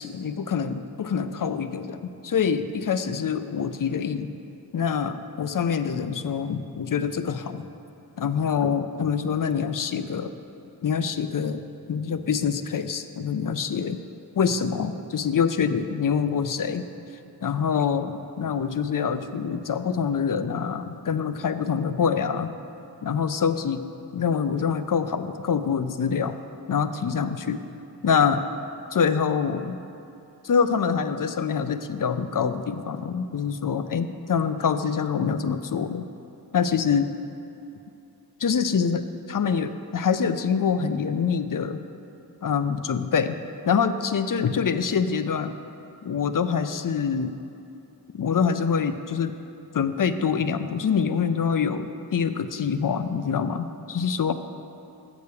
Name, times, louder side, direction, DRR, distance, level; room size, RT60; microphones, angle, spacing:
voice 1, 0.0-4.3 4.7-7.7 8.2-10.3 10.8-11.6 11.9-14.0 14.4-16.9 17.4-22.5 23.0-23.9 24.1-26.4 26.7-27.6 28.0-28.4 28.9-29.8 30.4-36.1 36.5-37.1 38.4-41.8 42.4-43.4 43.6-45.5 46.0-47.3 48.1-49.4 49.7-54.3, left 6 dB, 55° left, 11 dB, 0.4 m, -25 dB
7.8 x 4.9 x 6.9 m, 2.8 s
wide cardioid pair, 55°, 40 cm